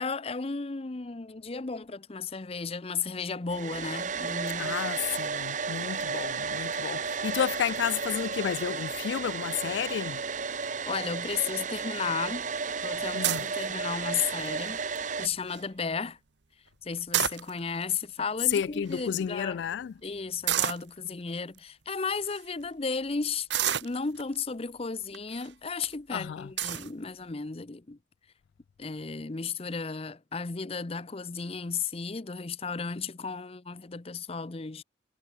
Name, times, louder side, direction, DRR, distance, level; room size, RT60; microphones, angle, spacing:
voice 1, 0.0-4.9 10.9-12.5 12.8-14.8 15.2-16.2 16.8-19.6 20.0-23.5 23.8-28.0 28.8-34.8, left 5 dB, 30° left, 0.6 m, -34 dB
Domestic sounds home sounds, 3.5-15.3, right 5 dB, 40° right, 1.3 m, -33 dB
voice 2, 4.6-10.2 13.1-13.4 18.5-19.9 26.1-26.5, left 8 dB, 70° left, 0.3 m, -31 dB
sound 1, 13.2-13.6 14.2-14.5 15.0-15.1 15.3-15.6 16.9-17.8 18.5-18.6 18.9-19.0 20.5-20.9 21.6-21.7 22.2-22.4 23.5-24.4 25.1-25.5 25.9-26.0 26.6-26.9, right 11 dB, 70° right, 1.1 m, -29 dB
head